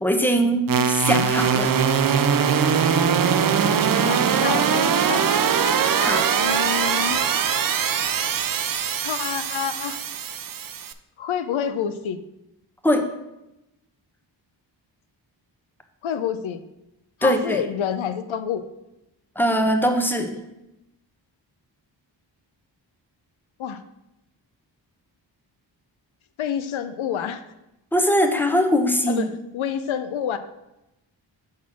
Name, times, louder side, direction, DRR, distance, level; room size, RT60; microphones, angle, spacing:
voice 1, 0.0-1.7 6.0-6.2 12.8-13.1 17.2-17.6 19.4-20.4 27.9-29.2, equal, 5° left, 5 dB, 0.9 m, -21 dB
sound 1, 0.7-10.9, right 7 dB, 50° right, 0.5 m, -21 dB
voice 2, 4.0-5.3 6.4-7.2 9.0-10.0 11.2-12.2 16.0-16.6 17.2-18.7 23.6-23.8 26.4-27.4 29.1-30.4, left 8 dB, 85° left, 10 dB, 0.6 m, -28 dB
6.3 x 4.1 x 6.0 m, 0.91 s
cardioid pair, 65°, 46 cm